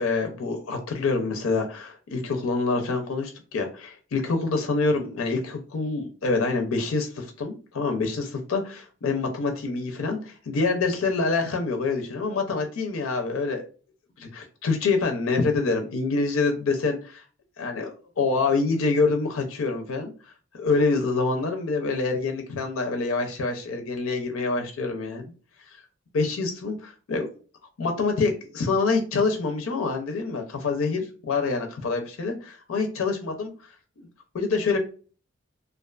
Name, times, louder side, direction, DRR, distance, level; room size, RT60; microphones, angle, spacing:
voice 1, 0.0-13.7 14.2-17.2 17.6-17.9 18.2-20.1 20.5-25.3 26.1-27.3 27.8-33.5 34.0-34.1 34.3-34.8, left 3 dB, 85° left, 4 dB, 0.5 m, -26 dB
2.4 x 2.3 x 2.3 m, 0.37 s
head